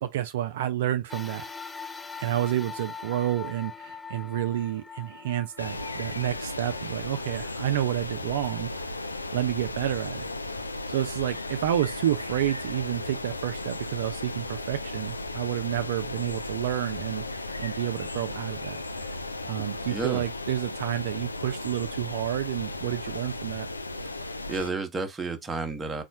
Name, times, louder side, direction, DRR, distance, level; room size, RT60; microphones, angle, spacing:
voice 1, 0.0-1.4 2.2-9.0 9.3-10.3 10.9-19.1 19.5-23.7, right 12 dB, 55° right, 0.4 m, -30 dB
sound 1, 1.1-9.7 10.3-10.4 11.5-11.6, left 5 dB, 10° left, 0.4 m, -43 dB
sound 2, 5.6-24.7, left 2 dB, 80° left, 0.4 m, -35 dB
voice 2, 19.6-20.2 24.0-26.0, right 3 dB, 15° right, 0.8 m, -33 dB
4.1 x 2.3 x 4.4 m
figure-of-eight pair, 90°, 0 cm